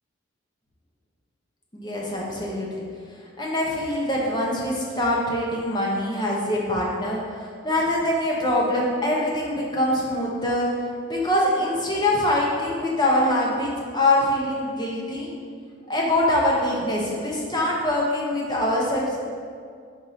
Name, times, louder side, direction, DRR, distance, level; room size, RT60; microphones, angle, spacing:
voice 1, 1.7-2.7 3.4-7.2 7.6-10.7 11.1-15.3 15.9-19.2, left 1 dB, 20° left, -3 dB, 0.9 m, -24 dB
4.7 x 4.2 x 5.0 m, 2.2 s
head